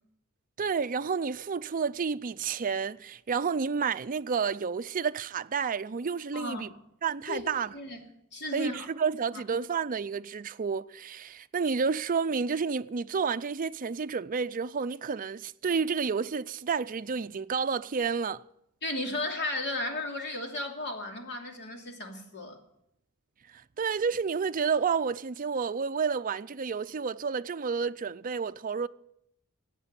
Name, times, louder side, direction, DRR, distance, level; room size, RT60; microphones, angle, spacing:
voice 1, 0.6-6.7 7.0-7.7 8.5-18.4 23.8-28.9, right 5 dB, 40° right, 0.5 m, -30 dB
voice 2, 6.3-6.8 7.3-8.9 9.3-9.4 18.8-22.6, left 2 dB, 55° left, 2.8 m, -35 dB
15.5 x 9.0 x 8.7 m
head